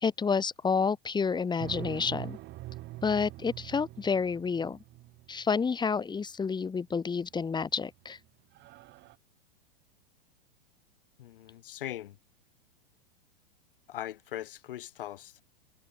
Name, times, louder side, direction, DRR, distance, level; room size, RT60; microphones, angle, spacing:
voice 1, 0.0-2.4 3.0-4.8 5.3-8.2, left 5 dB, 15° left, 2.4 m, -29 dB
sound 1, 1.6-5.5 7.3-7.8 8.2-8.3 8.5-9.1, right 17 dB, 40° right, 3.0 m, -44 dB
voice 2, 11.2-12.2 13.9-15.4, left 13 dB, 65° left, 7.2 m, -40 dB
hypercardioid pair, 100°, 29 cm